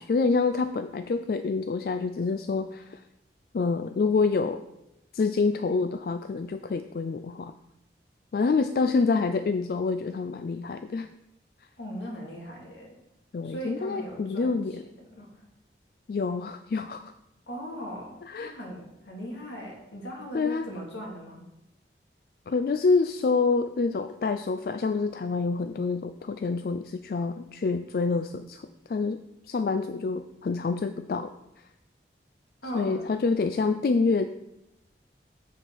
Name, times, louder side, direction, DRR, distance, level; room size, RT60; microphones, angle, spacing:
voice 1, 0.0-3.0 3.5-4.6 5.1-7.5 8.3-11.1 13.3-14.8 16.1-17.1 18.2-18.6 20.3-20.7 22.5-29.2 29.5-31.3 32.7-34.3, left 4 dB, 55° left, 9 dB, 0.3 m, -27 dB
voice 2, 11.8-13.0 13.4-15.4 17.5-21.4 32.6-33.2, equal, 80° left, -1 dB, 2.3 m, -39 dB
7.4 x 6.6 x 4.6 m, 0.86 s
head